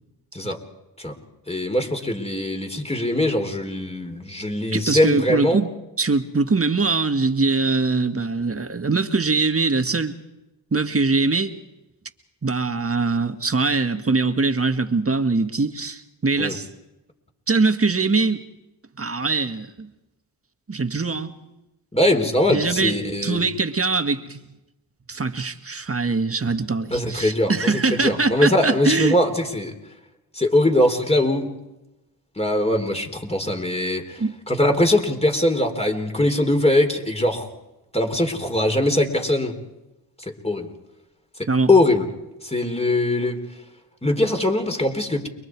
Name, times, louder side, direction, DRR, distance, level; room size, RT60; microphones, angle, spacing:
voice 1, 1.5-5.6 16.4-16.6 21.9-23.4 26.9-29.7 30.3-31.5 32.4-34.2 34.5-37.5 37.9-39.6 40.4-40.7 41.4-42.1 42.4-43.4 44.0-45.3, left 1 dB, 15° left, 4 dB, 4.2 m, -21 dB
voice 2, 4.7-10.2 10.7-11.5 12.4-16.7 17.5-18.5 19.0-19.9 20.7-21.3 22.5-24.4 25.1-29.2 34.2-34.4 41.5-41.7, right 3 dB, 30° right, 8 dB, 2.0 m, -22 dB
30.0 x 23.0 x 4.8 m, 0.96 s
supercardioid pair, 50°, 46 cm